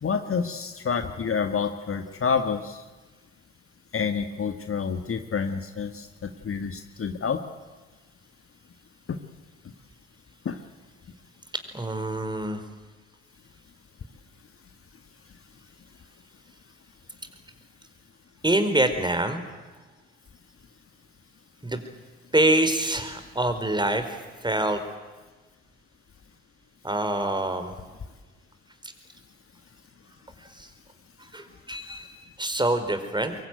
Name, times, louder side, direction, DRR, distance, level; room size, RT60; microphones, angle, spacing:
voice 1, 0.0-2.8 3.9-7.4 9.1-9.2 10.5-10.6, left 6 dB, 40° left, 7 dB, 1.9 m, -28 dB
voice 2, 11.7-12.6 18.4-19.4 21.6-21.8 22.3-24.8 26.8-27.8 30.4-30.7 31.2-33.4, right 1 dB, 15° right, 8 dB, 4.4 m, -26 dB
23.5 x 23.0 x 9.3 m, 1.3 s
hypercardioid pair, 45°, 34 cm